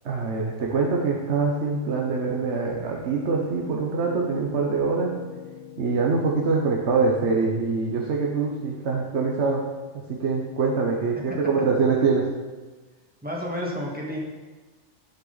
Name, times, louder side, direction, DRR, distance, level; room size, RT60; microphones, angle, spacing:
voice 1, 0.0-5.2 5.8-9.7 10.1-12.3, right 4 dB, 70° right, -1 dB, 1.3 m, -24 dB
Piano, 3.5-11.3, left 5 dB, 55° left, 1.3 m, -45 dB
voice 2, 11.3-11.6 13.2-14.2, equal, 10° right, -4 dB, 1.9 m, -31 dB
11.5 x 8.0 x 4.0 m, 1.3 s
omnidirectional pair, 1.2 m